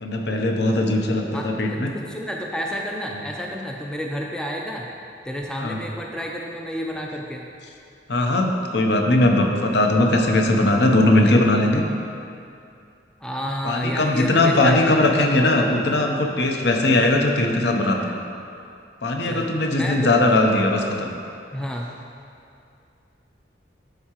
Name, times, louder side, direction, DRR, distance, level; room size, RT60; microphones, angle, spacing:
voice 1, 0.0-1.9 3.1-3.3 5.6-5.8 8.1-11.8 13.6-18.2 19.0-21.1, left 2 dB, 65° left, 2 dB, 0.7 m, -19 dB
voice 2, 1.3-4.9 5.2-7.5 13.2-15.0 19.2-20.1 21.5-21.9, equal, 5° left, -1 dB, 0.3 m, -30 dB
11.5 x 4.7 x 2.9 m, 2.5 s
head